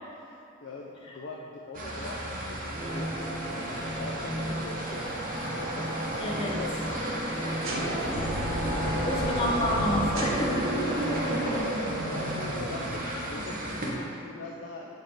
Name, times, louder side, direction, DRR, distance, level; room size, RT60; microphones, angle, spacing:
voice 1, 0.2-6.7 7.4-9.7 11.2-13.0 13.3-15.0, left 3 dB, 60° left, -2 dB, 0.5 m, -42 dB
sound 1, 1.7-13.9, right 1 dB, 40° right, 0.8 m, -36 dB
sound 2, 2.7-11.6, right 1 dB, 20° right, 1.2 m, -34 dB
voice 2, 6.2-6.5 9.1-10.8 11.1-11.3, left 1 dB, 30° left, -3 dB, 0.9 m, -29 dB
sound 3, 7.6-13.6, right 1 dB, 80° right, 0.9 m, -32 dB
7.3 x 5.3 x 3.7 m, 2.8 s
head